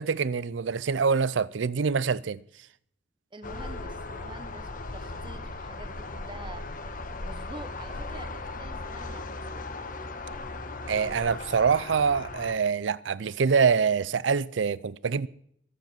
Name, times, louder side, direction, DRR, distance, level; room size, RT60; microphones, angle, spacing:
voice 1, 0.0-2.4 10.9-15.3, right 5 dB, 85° right, 0.5 m, -25 dB
voice 2, 3.3-6.7 7.2-9.7, right 2 dB, 25° right, 1.1 m, -47 dB
sound 1, 3.4-12.5, left 2 dB, 50° left, 1.3 m, -37 dB
22.0 x 7.5 x 7.8 m
head